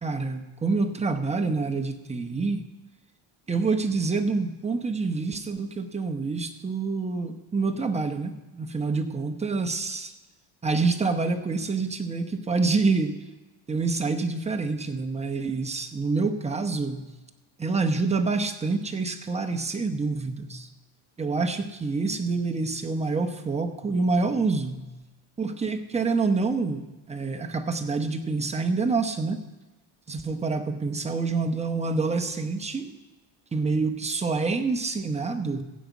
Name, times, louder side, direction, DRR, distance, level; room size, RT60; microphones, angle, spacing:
voice 1, 0.0-2.6 3.5-10.1 10.6-13.2 13.7-17.1 17.6-20.7 21.2-24.9 25.4-29.4 30.1-32.9 33.5-35.6, right 4 dB, 15° right, 4 dB, 0.9 m, -27 dB
15.0 x 5.2 x 8.3 m, 1.1 s
cardioid pair, 130°, 47 cm